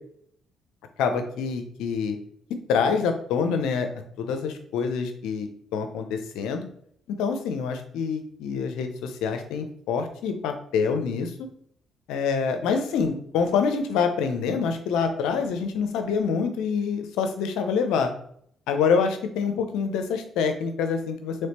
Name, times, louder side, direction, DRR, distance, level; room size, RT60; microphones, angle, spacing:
voice 1, 1.0-2.2 2.7-3.9 4.2-6.7 7.1-11.3 12.1-18.1 18.7-21.3, left 6 dB, 80° left, 7 dB, 0.6 m, -26 dB
3.4 x 3.2 x 4.2 m, 0.65 s
supercardioid pair, 60°, 0 cm